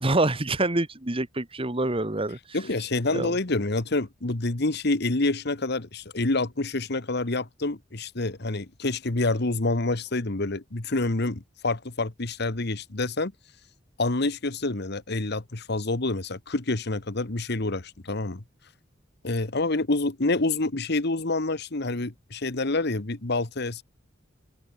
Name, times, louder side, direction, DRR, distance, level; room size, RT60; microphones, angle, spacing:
voice 1, 0.0-2.6 3.1-3.3, right 2 dB, 30° right, 1.9 m, -26 dB
voice 2, 2.5-13.3 14.0-18.4 19.2-23.8, left 2 dB, 60° left, 1.6 m, -27 dB
open air
head